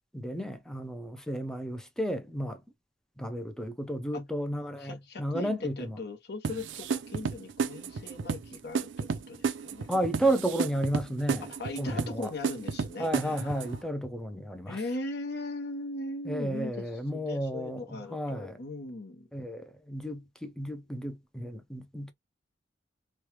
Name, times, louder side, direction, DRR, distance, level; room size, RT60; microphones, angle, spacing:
voice 1, 0.1-2.6 3.2-6.0 9.9-11.5 11.8-12.3 13.0-14.8 16.2-18.6 19.3-22.1, right 1 dB, 5° left, 0.4 m, -32 dB
voice 2, 4.8-9.9 11.5-13.8 14.7-16.8 17.1-19.3, left 2 dB, 60° left, 1.0 m, -39 dB
sound 1, 6.4-13.8, right 5 dB, 75° right, 0.4 m, -33 dB
3.1 x 2.2 x 2.9 m
head